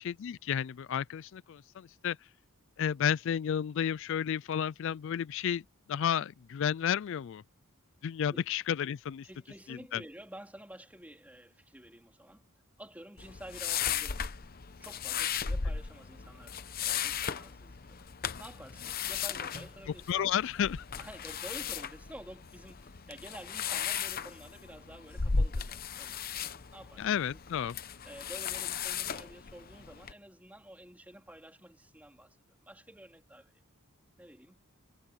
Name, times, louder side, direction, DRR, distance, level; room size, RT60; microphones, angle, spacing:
voice 1, 0.0-2.2 2.8-5.6 5.9-7.4 8.0-9.3 9.9-10.0 20.1-20.8 27.0-27.8, left 9 dB, 60° left, 0.3 m, -31 dB
voice 2, 9.2-12.4 12.8-14.3 14.8-18.0 18.4-20.4 21.0-27.4 28.0-32.4 32.6-33.6 34.2-34.6, right 1 dB, 5° right, 3.6 m, -50 dB
sound 1, 13.2-30.1, left 6 dB, 45° left, 0.8 m, -36 dB
head